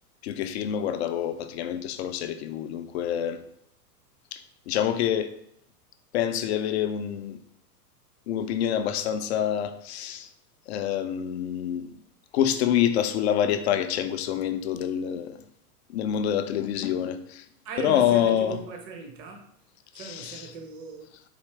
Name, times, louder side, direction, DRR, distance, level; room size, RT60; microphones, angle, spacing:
voice 1, 0.2-3.4 4.3-5.3 6.1-7.4 8.3-10.3 10.7-12.0 12.3-15.4 15.9-17.4 17.8-18.6 20.0-20.5, left 10 dB, 45° left, 0.4 m, -27 dB
voice 2, 17.6-19.5 19.9-21.1, right 4 dB, 30° right, 0.7 m, -38 dB
4.3 x 2.8 x 3.3 m
figure-of-eight pair, 100°, 48 cm